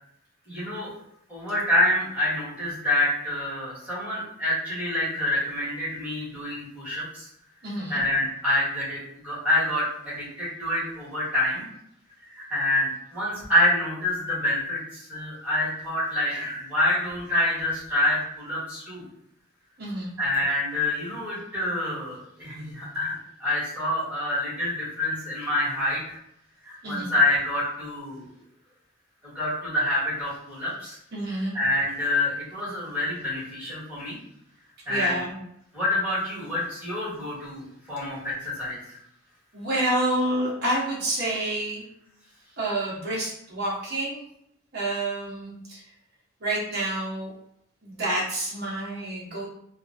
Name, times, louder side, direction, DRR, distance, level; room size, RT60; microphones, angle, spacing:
voice 1, 0.5-0.9 1.3-7.3 7.9-9.0 9.2-11.7 12.3-19.0 20.2-26.2 26.6-28.3 29.2-31.0 31.5-34.2 34.9-35.2 35.7-37.6 37.9-39.0, left 1 dB, 5° right, -10 dB, 1.4 m, -27 dB
voice 2, 7.6-8.0 19.8-20.1 26.8-27.1 31.1-31.5 34.9-35.4 39.5-41.8 42.6-44.2 44.7-45.8 46.4-47.3 47.8-49.5, right 1 dB, 50° right, -5 dB, 1.0 m, -28 dB
2.9 x 2.4 x 2.6 m, 0.75 s
head